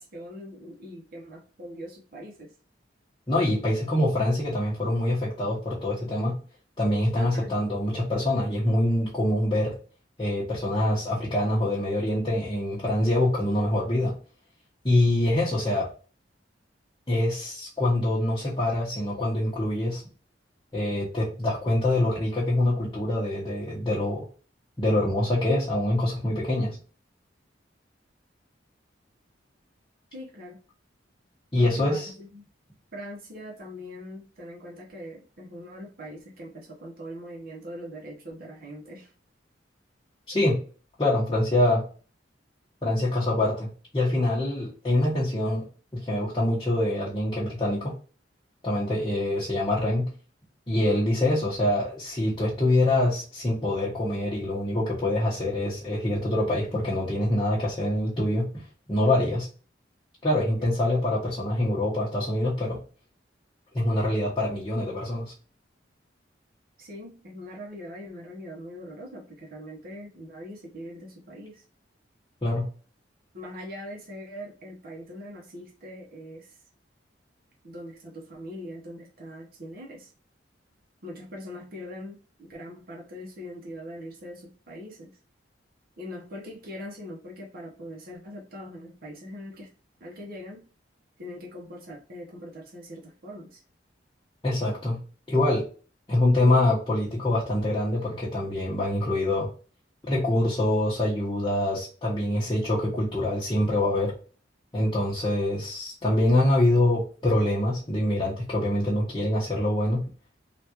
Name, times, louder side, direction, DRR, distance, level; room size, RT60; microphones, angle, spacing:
voice 1, 0.0-2.5 7.2-7.5 30.1-30.6 31.6-32.5 32.9-39.1 66.8-71.6 73.3-76.6 77.6-80.1 81.0-85.2 86.0-89.7 90.0-90.6 91.2-93.6, equal, 50° right, -1 dB, 0.8 m, -42 dB
voice 2, 3.3-6.3 6.8-9.7 10.2-14.1 14.8-15.9 17.1-20.0 20.7-24.2 24.8-26.8 31.5-32.1 40.3-40.6 41.0-41.8 42.8-45.6 45.9-47.9 48.6-50.1 50.7-58.5 58.9-59.5 60.2-62.8 63.7-65.3 72.4-72.7 94.4-95.0 95.3-95.6 96.1-99.5 100.0-104.1 104.7-110.0, left 1 dB, 25° left, -8 dB, 0.9 m, -25 dB
3.4 x 2.4 x 2.8 m, 0.38 s
head